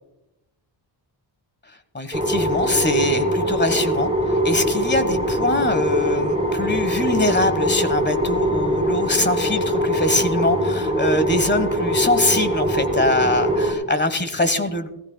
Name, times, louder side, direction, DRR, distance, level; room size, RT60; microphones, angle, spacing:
voice 1, 1.9-14.9, left 2 dB, 25° left, 11 dB, 1.2 m, -23 dB
sound 1, 2.1-13.7, equal, 10° right, 3.9 m, -22 dB
17.5 x 15.5 x 2.2 m, 0.87 s
cardioid pair, 100°, 46 cm